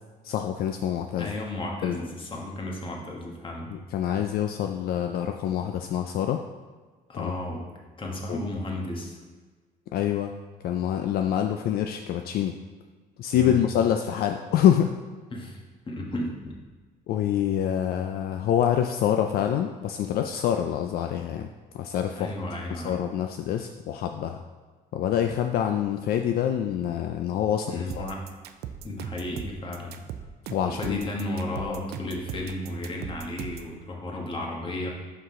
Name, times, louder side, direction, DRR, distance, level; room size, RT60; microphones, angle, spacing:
voice 1, 0.2-1.3 1.8-2.0 3.7-6.4 7.1-7.3 8.3-8.4 9.9-10.3 10.6-12.6 13.2-14.9 17.1-21.5 21.7-22.3 22.7-24.4 24.9-28.1 30.5-31.0, left 10 dB, 65° left, 5 dB, 0.4 m, -26 dB
voice 2, 1.2-3.7 7.1-7.6 8.0-9.2 13.3-13.6 15.3-16.6 22.2-23.0 27.7-28.2 28.8-30.0 30.6-34.9, left 1 dB, 30° left, 0 dB, 1.3 m, -33 dB
sound 1, 27.9-33.7, right 9 dB, 70° right, 0.5 m, -39 dB
5.9 x 5.5 x 3.7 m, 1.4 s
cardioid pair, 110°, 17 cm